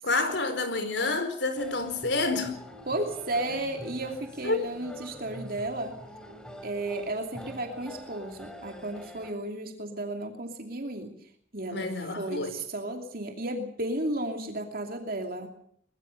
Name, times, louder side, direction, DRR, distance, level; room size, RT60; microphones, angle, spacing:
voice 1, 0.0-2.6 4.4-4.6 11.7-12.5, left 3 dB, 65° left, 4.5 m, -28 dB
sound 1, 1.5-9.3, equal, 5° left, 3.2 m, -46 dB
voice 2, 2.8-5.9 6.6-11.9 12.2-15.5, right 1 dB, 50° right, 2.8 m, -33 dB
22.5 x 22.0 x 6.6 m
head